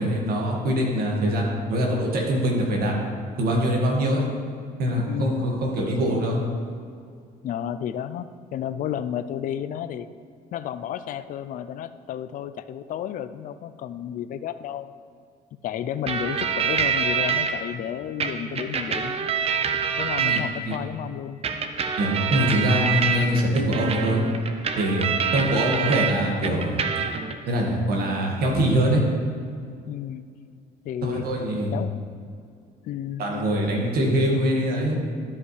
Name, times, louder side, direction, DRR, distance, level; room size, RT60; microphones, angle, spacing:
voice 1, 0.0-3.0 3.4-4.3 4.8-6.4 20.2-20.4 20.7-20.8 22.0-24.2 24.8-26.8 27.5-29.0 31.0-31.7 33.2-35.0, equal, 65° right, -1 dB, 1.8 m, -23 dB
voice 2, 5.1-5.5 7.4-10.1 10.5-14.9 15.6-19.3 20.0-21.4 29.9-30.2 30.8-31.2 31.7-32.1 32.8-33.8, left 10 dB, 50° left, 12 dB, 0.4 m, -32 dB
sound 1, 16.1-17.5 18.2-20.8 21.4-26.1 26.4-27.3, right 6 dB, 35° right, 0.7 m, -26 dB
12.0 x 5.4 x 3.2 m, 2.3 s
cardioid pair, 110°, 17 cm